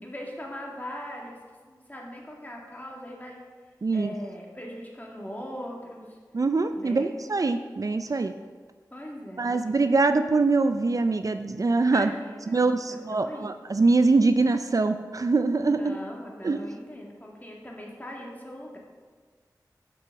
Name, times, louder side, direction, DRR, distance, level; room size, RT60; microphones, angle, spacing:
voice 1, 0.0-1.4 1.7-6.2 6.7-7.1 8.9-9.8 11.9-13.5 15.6-18.8, equal, 25° left, -2 dB, 2.0 m, -40 dB
voice 2, 3.8-4.1 6.3-8.3 9.4-12.1 12.5-16.0 16.4-16.7, right 3 dB, 50° right, 9 dB, 0.4 m, -23 dB
6.2 x 6.0 x 5.8 m, 1.5 s
cardioid pair, 40°, 7 cm